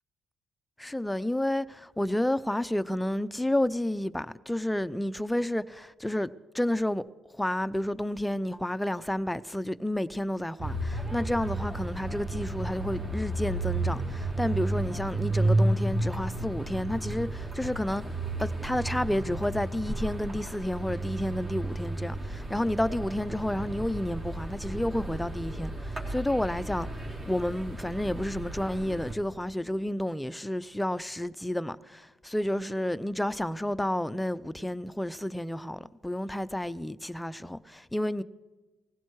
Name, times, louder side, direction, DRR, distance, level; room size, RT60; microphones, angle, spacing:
voice 1, 0.8-6.3 6.5-7.0 7.3-18.0 18.4-38.2, left 1 dB, 5° left, 0.6 m, -30 dB
sound 1, 10.6-29.1, right 2 dB, 40° right, 3.8 m, -32 dB
19.0 x 16.0 x 4.7 m
cardioid pair, 90°, 0 cm